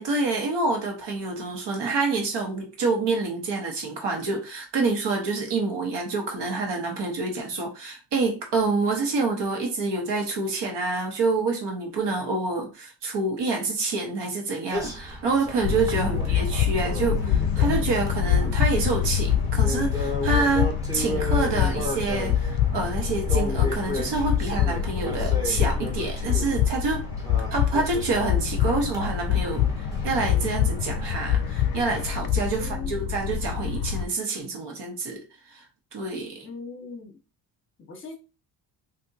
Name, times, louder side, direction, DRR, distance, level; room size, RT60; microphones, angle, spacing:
voice 1, 0.0-27.0 27.5-29.7 30.0-35.2 35.5-35.6 35.9-36.5, right 3 dB, 70° right, 2 dB, 1.2 m, -27 dB
sound 1, 14.7-32.0, left 1 dB, 10° right, 0.9 m, -35 dB
sound 2, 15.6-34.1, left 9 dB, 55° left, 0.5 m, -25 dB
voice 2, 16.1-16.4 32.6-33.1 36.4-37.2 37.8-38.2, left 4 dB, 25° left, 4 dB, 0.9 m, -40 dB
3.5 x 2.7 x 2.7 m, 0.31 s
cardioid pair, 150°, 44 cm